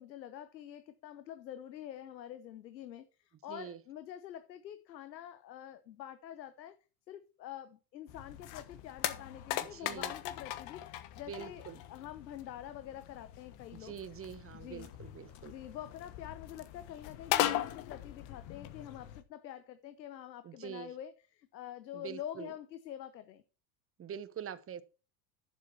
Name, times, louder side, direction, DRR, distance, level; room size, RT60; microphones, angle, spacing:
voice 1, 0.0-6.8 7.1-13.9 14.5-14.9 15.4-23.4, left 11 dB, 85° left, 0.9 m, -46 dB
voice 2, 3.5-3.8 9.7-10.1 11.3-11.8 13.7-15.5 20.4-20.9 21.9-22.5 24.0-24.8, right 8 dB, 25° right, 1.1 m, -44 dB
sound 1, 8.1-19.2, left 13 dB, 60° left, 1.4 m, -39 dB
11.0 x 7.3 x 4.5 m
hypercardioid pair, 80°, 50 cm